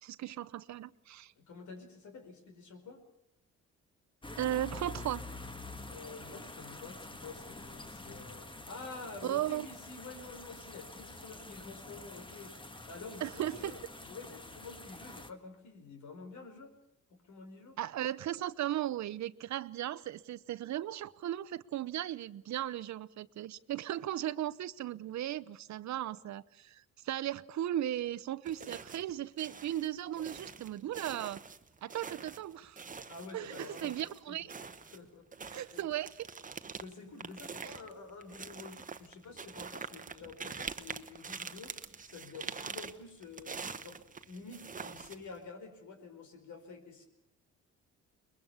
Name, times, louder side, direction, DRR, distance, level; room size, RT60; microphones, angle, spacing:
voice 1, 0.0-1.3 4.4-5.2 9.2-9.7 13.2-13.8 17.8-31.4 31.8-32.9 33.3-34.5 35.5-36.3 37.6-37.8, right 12 dB, 65° right, 0.8 m, -36 dB
voice 2, 1.4-3.0 5.8-12.5 12.9-16.7 17.1-17.8 33.1-34.4 34.9-35.9 36.8-41.7 42.1-47.1, left 4 dB, 75° left, 4.9 m, -49 dB
sound 1, 4.2-15.3, left 2 dB, 15° left, 1.6 m, -47 dB
sound 2, 28.5-29.1 29.4-34.2 34.5-45.4, right 5 dB, 25° right, 1.1 m, -45 dB
22.5 x 21.5 x 6.9 m
cardioid pair, 90°, 30 cm